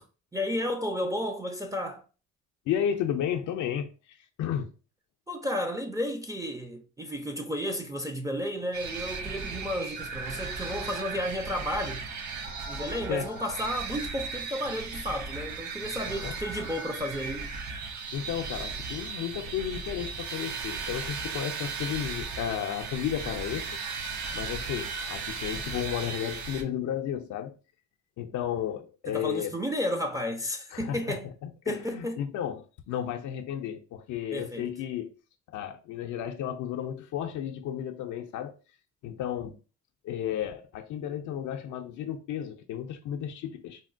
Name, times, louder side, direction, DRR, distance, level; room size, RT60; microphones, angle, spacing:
voice 1, 0.3-2.0 5.3-12.0 12.7-17.5 29.1-31.3 31.7-32.2 34.3-34.7, equal, 10° right, 0.4 m, -32 dB
voice 2, 2.7-4.7 13.1-13.3 16.0-16.3 18.1-23.7 24.3-27.5 28.2-29.5 30.7-35.1 35.5-38.5 39.0-39.6 40.0-43.8, left 9 dB, 75° left, 0.4 m, -33 dB
sound 1, 8.7-26.6, right 4 dB, 70° right, 0.7 m, -36 dB
3.9 x 2.1 x 2.4 m
cardioid pair, 90°, 30 cm